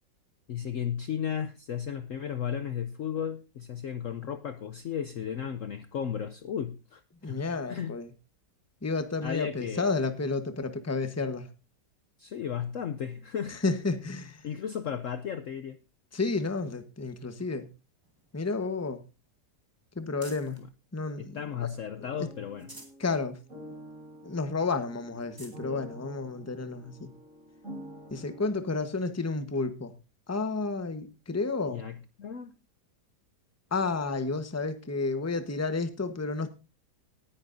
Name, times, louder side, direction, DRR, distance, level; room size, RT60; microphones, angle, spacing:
voice 1, 0.5-7.4 7.7-7.9 9.2-9.9 12.2-13.6 14.4-15.8 20.6-20.7 21.2-22.7 31.7-32.6, left 8 dB, 60° left, 0.9 m, -34 dB
voice 2, 7.2-8.1 8.8-11.5 13.5-14.5 16.1-17.7 18.3-19.0 19.9-20.6 20.9-21.7 23.0-23.4 24.2-27.1 28.1-29.9 30.3-31.8 33.7-36.5, left 3 dB, 10° left, 0.9 m, -31 dB
sound 1, 18.0-20.7 21.2-22.0 22.4-23.1 23.5-23.6 24.0-24.1 24.7-24.8 25.1-25.6 26.4-26.5 28.3-28.4, right 1 dB, 10° right, 2.2 m, -53 dB
sound 2, 22.1-28.5, equal, 50° right, 7.3 m, -48 dB
18.5 x 10.0 x 2.6 m
omnidirectional pair, 1.8 m